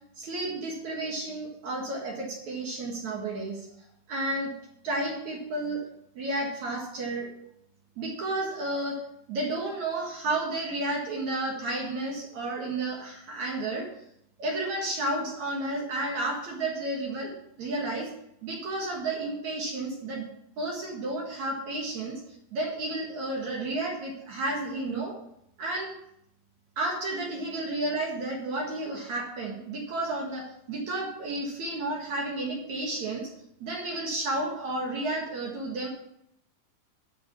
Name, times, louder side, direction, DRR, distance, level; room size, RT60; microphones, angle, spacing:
voice 1, 0.2-3.7 4.1-4.5 4.8-5.8 6.2-7.3 8.0-9.0 9.3-13.9 14.4-17.3 17.6-18.1 18.4-20.3 20.6-22.2 22.5-25.2 25.6-25.9 26.8-33.3 33.6-35.9, right 2 dB, 55° right, -1 dB, 2.4 m, -32 dB
11.0 x 6.1 x 7.0 m, 0.76 s
omnidirectional pair, 5.1 m